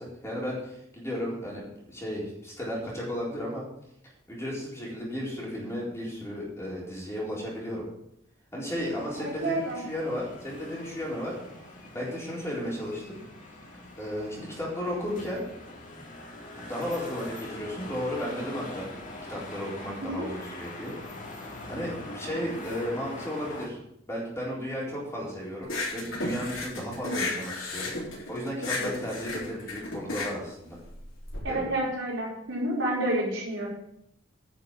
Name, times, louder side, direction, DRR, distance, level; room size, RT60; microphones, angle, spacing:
voice 1, 0.0-1.6 1.9-3.6 4.3-7.8 8.5-11.4 11.9-13.2 14.0-15.4 16.6-18.9 19.3-20.9 21.7-23.8 24.1-27.9 28.3-30.8 31.5-31.7, equal, 15° left, -5 dB, 4.1 m, -34 dB
sound 1, 8.7-23.7, left 1 dB, 40° left, 2.4 m, -43 dB
voice 2, 9.2-9.8 20.0-20.3 31.4-33.7, right 1 dB, 65° right, -4 dB, 4.8 m, -29 dB
sound 2, 25.6-31.4, left 2 dB, 85° left, 3.8 m, -33 dB
10.5 x 6.5 x 7.6 m, 0.76 s
head